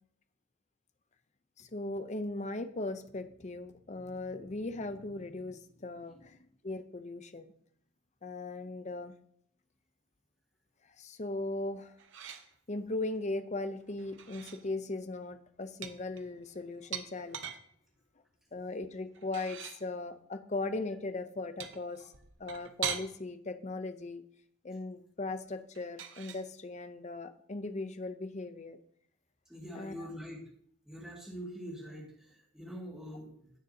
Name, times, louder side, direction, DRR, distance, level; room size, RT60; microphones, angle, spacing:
voice 1, 1.6-7.5 8.2-9.1 11.0-11.9 12.7-17.5 18.5-22.1 22.4-24.2 24.6-28.8 29.7-30.1, left 2 dB, 30° left, 9 dB, 0.6 m, -38 dB
sound 1, 12.0-12.5 14.0-14.6 15.8-17.6 19.1-19.8 21.6-23.1 25.7-26.4, right 8 dB, 55° right, 0.9 m, -41 dB
voice 2, 29.5-30.4 30.9-33.5, equal, 5° right, -4 dB, 2.1 m, -44 dB
16.5 x 6.6 x 2.8 m, 0.66 s
head